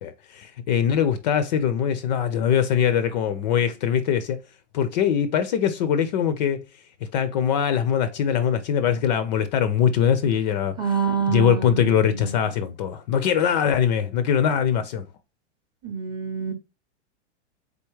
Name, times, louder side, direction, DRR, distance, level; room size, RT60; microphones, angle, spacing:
voice 1, 0.0-4.4 4.7-6.6 7.1-10.7 11.3-15.1, left 8 dB, 40° left, 0.4 m, -22 dB
voice 2, 10.8-12.5 15.8-16.5, right 6 dB, 10° right, 0.5 m, -27 dB
3.9 x 3.4 x 3.0 m
supercardioid pair, 145°, 36 cm